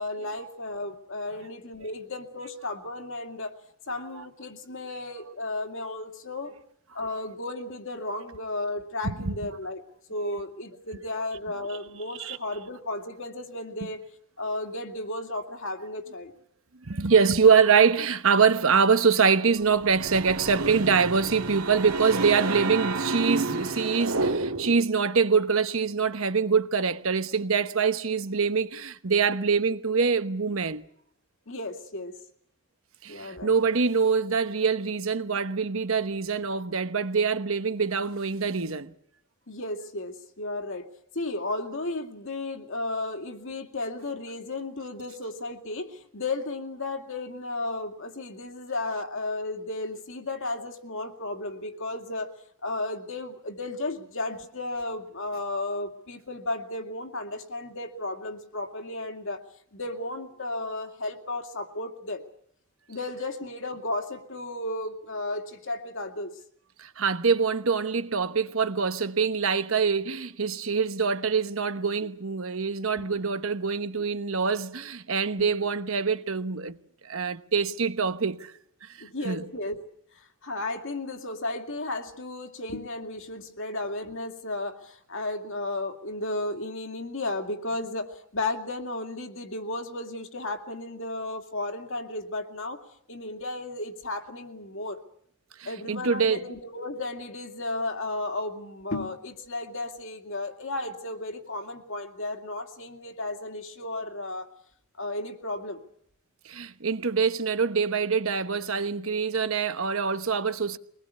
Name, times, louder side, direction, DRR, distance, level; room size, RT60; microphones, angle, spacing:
voice 1, 0.0-3.5 3.9-6.5 6.9-9.8 10.1-14.0 14.4-16.3 31.5-32.2 33.1-33.6 39.5-40.9 41.1-52.3 52.6-59.4 59.7-62.2 62.9-66.4 73.0-73.3 75.4-75.5 79.0-79.8 80.2-92.8 93.1-95.0 95.7-104.5 105.0-105.8, left 2 dB, 60° left, 2.3 m, -34 dB
voice 2, 9.0-9.4 12.1-12.4 16.8-30.8 33.0-38.9 66.8-76.8 77.0-78.5 78.8-79.0 79.2-79.4 95.6-96.4 106.4-110.8, right 5 dB, 65° right, 1.1 m, -24 dB
sound 1, 19.6-24.9, right 3 dB, 85° right, 2.0 m, -30 dB
23.5 x 20.0 x 8.3 m
head